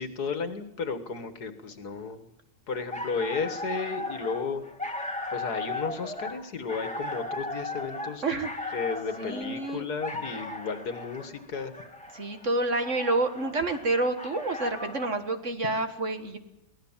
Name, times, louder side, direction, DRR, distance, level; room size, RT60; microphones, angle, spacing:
voice 1, 0.0-2.3 2.7-4.7 5.3-8.2 8.7-11.7, left 5 dB, 65° left, 10 dB, 2.2 m, -33 dB
sound 1, 2.7-15.1, left 2 dB, 5° left, 1.9 m, -37 dB
voice 2, 8.2-8.7 9.2-9.8 12.1-16.4, right 2 dB, 45° right, 8 dB, 1.8 m, -28 dB
23.5 x 17.5 x 7.4 m, 0.84 s
omnidirectional pair, 1.8 m